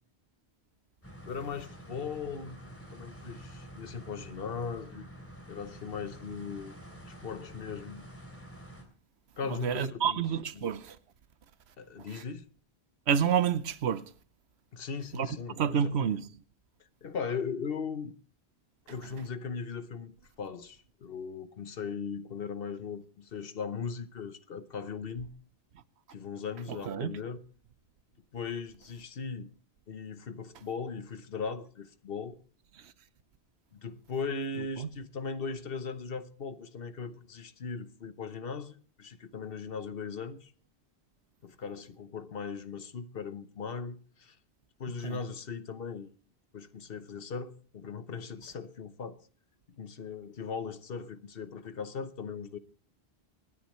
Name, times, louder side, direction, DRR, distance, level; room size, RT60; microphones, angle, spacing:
sound 1, 1.0-8.8, equal, 15° left, 3.0 m, -48 dB
voice 1, 1.3-5.1 5.5-6.7 7.1-8.1 9.4-10.2 10.5-10.7 11.8-12.5 14.7-16.1 17.0-18.1 18.9-25.3 26.1-27.4 28.3-29.5 29.9-32.4 33.7-40.5 41.4-44.4 44.8-46.1 46.5-49.2 49.8-52.6, left 5 dB, 65° left, 1.1 m, -38 dB
voice 2, 9.6-11.0 12.1-12.2 13.1-14.0 15.1-15.3 15.6-16.2 26.9-27.1 34.8-34.9 45.0-45.2, right 8 dB, 80° right, 1.0 m, -28 dB
25.5 x 9.8 x 3.1 m
omnidirectional pair, 1.1 m